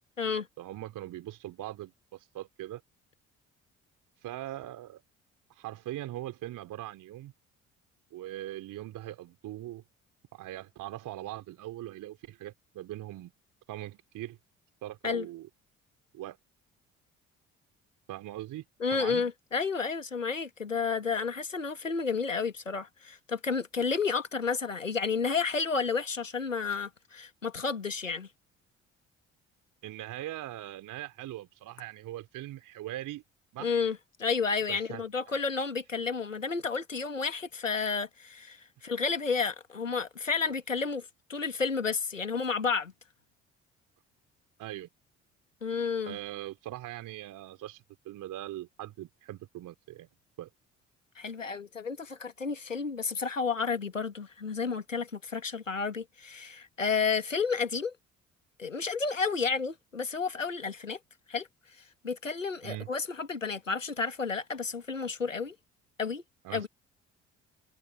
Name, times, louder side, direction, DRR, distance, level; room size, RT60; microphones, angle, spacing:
voice 1, 0.6-2.8 4.2-5.0 5.5-7.3 8.1-9.8 10.3-13.3 13.7-14.4 14.8-15.5 16.1-16.4 18.1-18.7 18.9-19.3 29.8-33.2 33.5-33.7 34.7-35.0 35.3-35.4 40.4-40.5 44.6-44.9 46.1-50.1 50.4-50.5 62.6-62.9 66.4-66.7, right 14 dB, 55° right, 3.9 m, -41 dB
voice 2, 18.8-28.3 33.6-42.9 45.6-46.2 51.2-57.9 58.6-61.0 61.3-61.5 62.0-65.6 66.0-66.2 66.5-66.7, left 5 dB, 90° left, 2.1 m, -31 dB
figure-of-eight pair, 50°, 37 cm